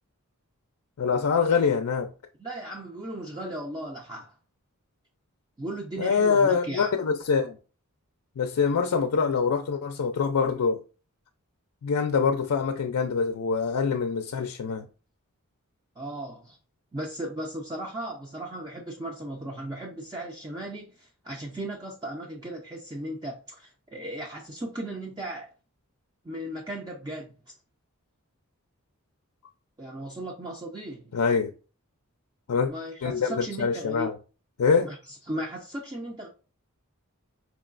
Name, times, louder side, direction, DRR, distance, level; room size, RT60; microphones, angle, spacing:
voice 1, 1.0-2.1 6.0-7.6 8.4-10.8 11.8-14.9 31.1-31.5 32.5-32.7 33.0-34.1 34.6-34.9, left 5 dB, 80° left, 0.4 m, -24 dB
voice 2, 2.4-4.3 5.6-6.9 16.0-16.6 16.9-25.5 26.2-27.3 29.8-31.2 32.7-34.1 34.8-35.0 35.3-36.3, right 1 dB, 20° right, 0.5 m, -36 dB
4.7 x 3.0 x 2.4 m
head